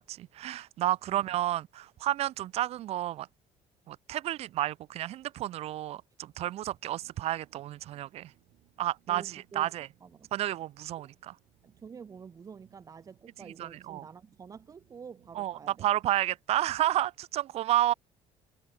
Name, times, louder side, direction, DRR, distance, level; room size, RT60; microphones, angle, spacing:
voice 1, 0.0-3.3 3.9-8.3 8.8-9.9 10.3-11.3 13.6-14.0 15.3-17.9, right 13 dB, 55° right, 1.2 m, -31 dB
sound 1, 7.0-15.9, right 18 dB, 75° right, 7.5 m, -67 dB
voice 2, 9.1-9.7 10.0-10.3 11.0-11.1 11.6-15.9, right 6 dB, 25° right, 6.2 m, -48 dB
cardioid pair, 165°, 13 cm